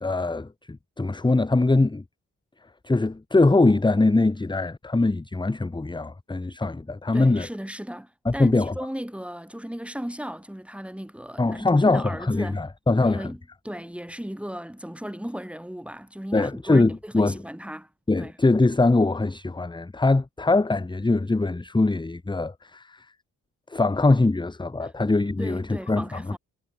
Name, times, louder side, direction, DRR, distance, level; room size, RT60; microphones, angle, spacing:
voice 1, 0.0-2.0 2.8-7.5 8.2-8.7 11.4-13.3 16.3-17.4 18.1-23.1 23.7-26.2, left 2 dB, 15° left, 1.1 m, -22 dB
voice 2, 7.1-12.6 13.0-13.4 13.6-17.9 18.2-18.3 24.8-24.9 25.4-26.4, equal, 5° right, 2.1 m, -36 dB
supercardioid pair, 50°, 36 cm